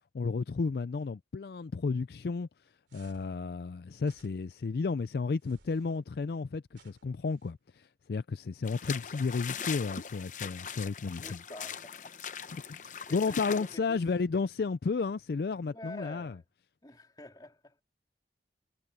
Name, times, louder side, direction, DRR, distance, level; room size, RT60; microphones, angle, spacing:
voice 1, 0.1-2.5 2.9-11.4 12.5-16.3, left 4 dB, 60° left, 0.4 m, -32 dB
sound 1, 2.9-3.4 4.0-4.7 5.4-6.0 6.7-7.5, right 3 dB, 85° right, 3.0 m, -62 dB
sound 2, 8.6-13.8, left 7 dB, 45° left, 0.8 m, -40 dB
voice 2, 11.1-12.1 12.7-14.1 15.7-16.5 16.8-17.8, left 1 dB, 20° left, 3.2 m, -48 dB
head